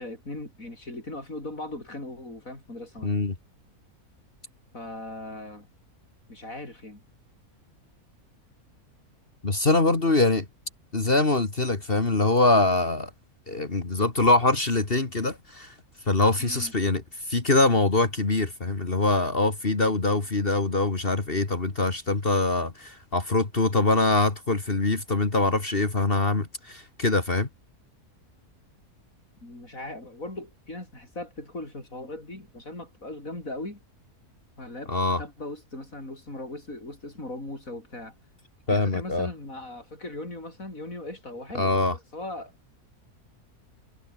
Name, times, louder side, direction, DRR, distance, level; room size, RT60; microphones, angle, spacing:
voice 1, 0.0-3.1 4.7-5.7 6.3-7.0 16.4-16.7 29.4-33.8 34.6-38.1 38.7-42.5, left 2 dB, 60° left, 7.9 m, -39 dB
voice 2, 3.0-3.3 9.4-10.5 10.9-13.1 13.5-15.7 16.1-27.5 34.9-35.2 38.7-39.3 41.5-41.9, left 2 dB, 35° left, 2.5 m, -23 dB
omnidirectional pair, 1.6 m